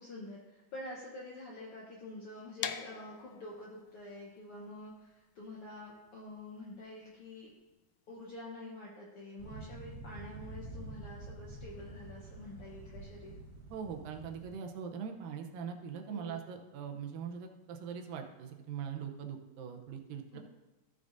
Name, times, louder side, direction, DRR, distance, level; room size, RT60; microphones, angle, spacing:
voice 1, 0.0-7.5 8.1-13.3 16.1-16.4 20.3-20.4, left 1 dB, 65° left, -3 dB, 1.4 m, -47 dB
sound 1, 2.6-8.4, left 10 dB, 90° left, 1.7 m, -45 dB
sound 2, 9.4-14.5, right 2 dB, 40° right, 3.8 m, -47 dB
voice 2, 13.7-20.4, right 7 dB, 80° right, 4 dB, 2.5 m, -42 dB
14.5 x 6.9 x 2.6 m, 1.1 s
omnidirectional pair, 4.0 m